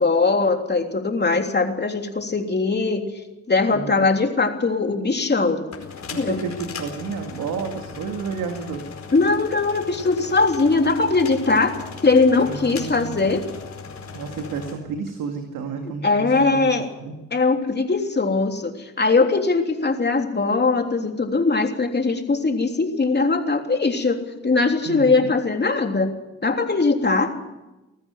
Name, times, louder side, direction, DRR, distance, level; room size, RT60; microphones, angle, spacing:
voice 1, 0.0-3.0 3.5-5.6 6.1-6.4 9.1-11.7 12.0-13.4 15.8-16.9 17.3-24.2 24.4-26.1 26.4-27.3, left 3 dB, 30° left, 4 dB, 3.3 m, -20 dB
sound 1, 5.5-14.8, left 5 dB, 55° left, 4.8 m, -38 dB
voice 2, 6.1-8.9 12.4-13.3 14.1-16.7 17.0-17.1 24.9-25.3, right 5 dB, 75° right, 4 dB, 2.3 m, -31 dB
20.5 x 14.0 x 9.3 m, 1.0 s
hypercardioid pair, 50°, 32 cm